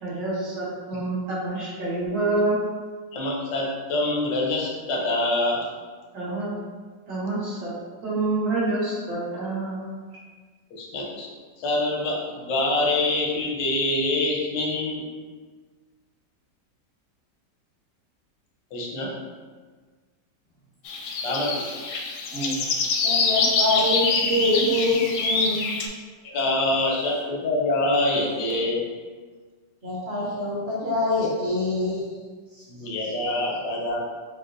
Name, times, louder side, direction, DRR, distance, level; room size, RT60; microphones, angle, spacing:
voice 1, 0.0-2.6 6.1-6.5 7.1-7.7 8.0-9.9, right 2 dB, 75° right, -7 dB, 1.8 m, -27 dB
voice 2, 3.1-5.6 10.7-11.3 11.6-15.0 18.7-19.2 21.2-21.6 26.2-28.8 32.7-34.0, left 2 dB, 90° left, -2 dB, 1.4 m, -25 dB
sound 1, 20.8-25.9, left 4 dB, 70° left, 0.8 m, -25 dB
voice 3, 23.0-25.7 29.8-32.0, left 1 dB, 50° right, -6 dB, 0.8 m, -25 dB
6.2 x 2.2 x 2.5 m, 1.5 s
omnidirectional pair, 1.9 m